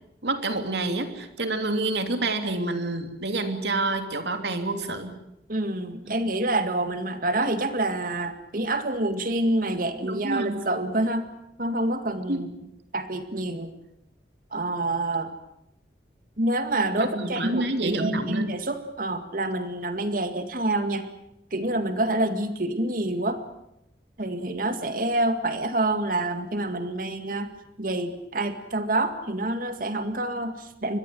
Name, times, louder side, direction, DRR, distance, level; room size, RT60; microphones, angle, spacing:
voice 1, 0.2-5.1 6.0-6.2 10.0-10.6 12.3-12.4 17.0-18.5, right 2 dB, 75° right, 7 dB, 3.0 m, -28 dB
voice 2, 5.5-11.3 11.6-12.5 12.9-13.7 14.5-15.3 16.4-21.1 21.5-23.4 24.2-27.5 27.8-31.0, right 2 dB, 50° right, 9 dB, 2.1 m, -27 dB
25.0 x 21.5 x 7.9 m, 0.82 s
head